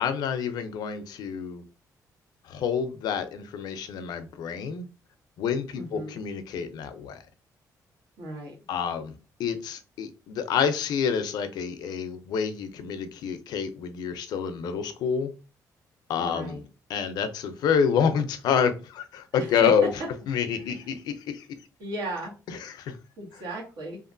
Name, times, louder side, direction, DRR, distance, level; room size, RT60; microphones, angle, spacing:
voice 1, 0.0-1.6 2.4-4.9 5.4-7.2 8.7-15.3 16.1-16.6 16.9-19.9 20.3-21.5 22.5-23.0, left 7 dB, 85° left, 0.4 m, -28 dB
voice 2, 5.7-6.2 8.2-8.6 16.2-16.6 19.3-19.7 20.6-20.7 21.8-22.7 23.2-24.0, right 1 dB, 85° right, 1.2 m, -36 dB
2.9 x 2.4 x 2.5 m
cardioid pair, 150°, 7 cm